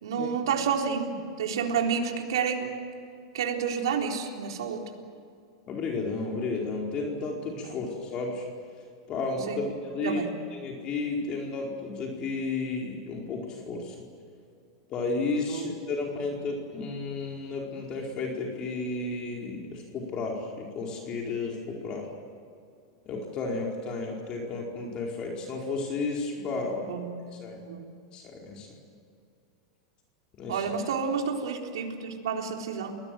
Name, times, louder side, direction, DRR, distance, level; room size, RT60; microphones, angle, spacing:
voice 1, 0.0-2.8 3.3-4.9 9.5-9.6 10.0-10.3 15.5-15.7 26.9-27.2 27.5-27.9 30.5-33.0, right 6 dB, 80° right, 2 dB, 3.9 m, -30 dB
voice 2, 5.7-8.4 8.7-10.2 10.5-14.0 14.9-22.1 23.0-26.9 27.4-27.6 28.1-28.7 30.3-30.6, left 3 dB, 35° left, 0 dB, 4.6 m, -33 dB
30.0 x 20.0 x 7.9 m, 2.4 s
supercardioid pair, 130°, 3 cm